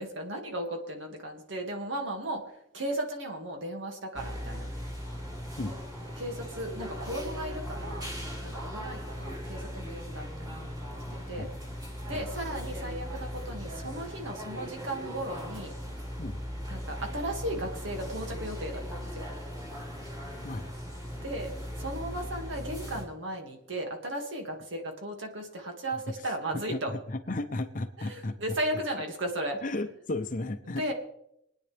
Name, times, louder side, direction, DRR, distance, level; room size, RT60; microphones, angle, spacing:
voice 1, 0.0-4.7 6.2-8.1 8.4-10.6 10.9-11.5 12.1-15.7 16.7-19.3 21.2-21.5 21.8-26.9 28.0-29.6 30.7-30.9, right 1 dB, 70° right, 3 dB, 2.2 m, -36 dB
sound 1, 4.1-23.0, equal, 20° right, 3.2 m, -38 dB
voice 2, 26.5-28.6 29.6-30.9, left 2 dB, 40° left, 7 dB, 0.7 m, -34 dB
23.5 x 9.7 x 3.5 m, 0.79 s
head